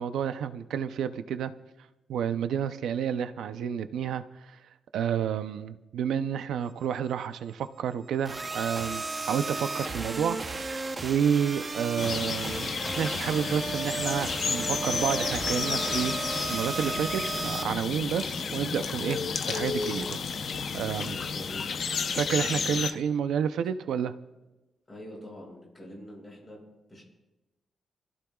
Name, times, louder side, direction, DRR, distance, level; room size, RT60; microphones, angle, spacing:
voice 1, 0.0-1.5 2.1-4.2 4.9-12.7 13.0-19.2 19.5-20.2 20.7-21.1 22.1-24.1, right 8 dB, 85° right, 10 dB, 0.6 m, -30 dB
sound 1, 8.2-17.6, right 3 dB, 20° right, 0.8 m, -34 dB
sound 2, 12.0-22.9, left 5 dB, 45° left, 0.7 m, -32 dB
sound 3, 18.0-21.3 21.6-22.0 22.8-23.0, left 7 dB, 65° left, 1.1 m, -41 dB
voice 2, 21.0-21.7 24.9-26.6 26.9-27.0, equal, 20° left, -2 dB, 6.0 m, -45 dB
29.0 x 14.5 x 2.4 m, 1.0 s
wide cardioid pair, 180°, 0 cm